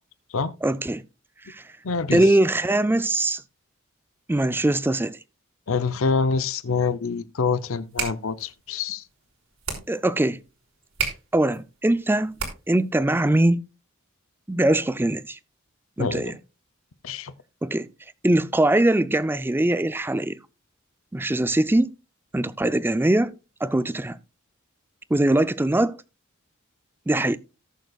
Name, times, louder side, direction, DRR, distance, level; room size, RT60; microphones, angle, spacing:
voice 1, 0.6-1.0 1.5-1.6 2.1-3.4 4.3-5.2 9.9-10.4 11.3-12.4 12.7-13.6 14.5-15.4 16.0-16.4 17.6-17.9 18.2-20.4 21.1-21.9 22.3-23.3 23.6-24.2 25.1-26.0 27.1-27.4, right 1 dB, 10° right, 0.4 m, -21 dB
voice 2, 1.8-2.2 5.7-9.0 16.0-16.4 17.0-17.3, left 4 dB, 70° left, 0.7 m, -26 dB
sound 1, 7.7-12.9, right 6 dB, 80° right, 3.5 m, -35 dB
18.0 x 6.7 x 2.3 m
head